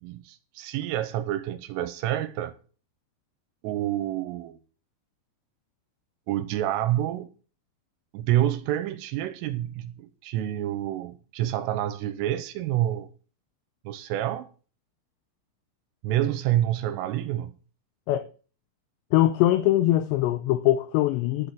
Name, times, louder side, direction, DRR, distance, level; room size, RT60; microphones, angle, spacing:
voice 1, 0.0-2.5 3.6-4.6 6.3-7.3 8.1-13.1 13.9-14.5 16.0-17.6, right 12 dB, 85° right, 3.3 m, -28 dB
voice 2, 19.1-21.5, left 14 dB, 85° left, 2.5 m, -22 dB
11.0 x 6.6 x 8.6 m
omnidirectional pair, 5.9 m